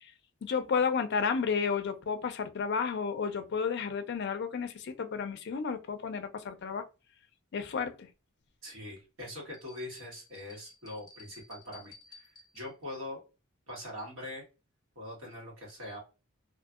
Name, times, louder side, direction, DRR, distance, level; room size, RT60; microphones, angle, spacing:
voice 1, 0.4-6.8 7.5-8.1, left 6 dB, 55° left, 0.4 m, -32 dB
voice 2, 8.6-12.3 12.5-13.2 13.7-14.4 14.9-16.0, left 1 dB, 75° right, 1.4 m, -42 dB
sound 1, 9.5-12.9, left 4 dB, 20° left, 0.8 m, -55 dB
2.6 x 2.5 x 2.4 m
head